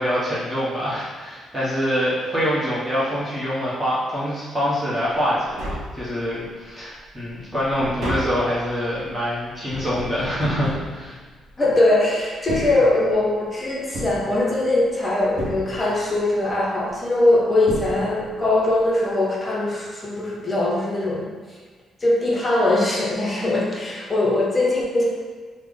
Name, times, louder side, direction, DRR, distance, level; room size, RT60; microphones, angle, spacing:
voice 1, 0.0-11.2, equal, 15° right, -10 dB, 1.0 m, -25 dB
Tap, 5.4-6.5 7.0-11.7 12.3-13.4 13.9-14.9 15.4-16.2 17.2-17.3 17.7-18.5 18.8-18.9, equal, 65° right, 0.7 m, -33 dB
voice 2, 11.6-21.3 22.0-25.1, left 2 dB, 25° left, -3 dB, 0.7 m, -21 dB
3.3 x 2.1 x 3.6 m, 1.4 s
cardioid pair, 90°, 0 cm